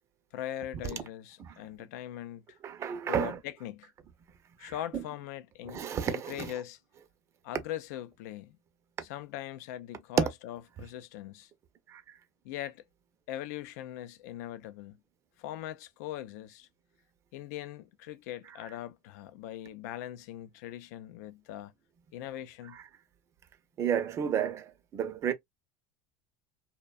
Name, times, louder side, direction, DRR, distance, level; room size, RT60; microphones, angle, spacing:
voice 1, 0.3-2.4 3.1-3.9 4.6-6.8 7.4-8.6 9.0-11.5 12.4-12.8 13.3-15.0 15.4-16.7 17.3-21.7 22.1-22.8, left 12 dB, 75° left, 0.4 m, -41 dB
voice 2, 2.6-3.4 4.6-5.0 5.7-6.5 10.2-10.3 11.9-12.0 23.8-25.3, right 8 dB, 30° right, 0.5 m, -31 dB
2.5 x 2.2 x 2.3 m
supercardioid pair, 135°, 9 cm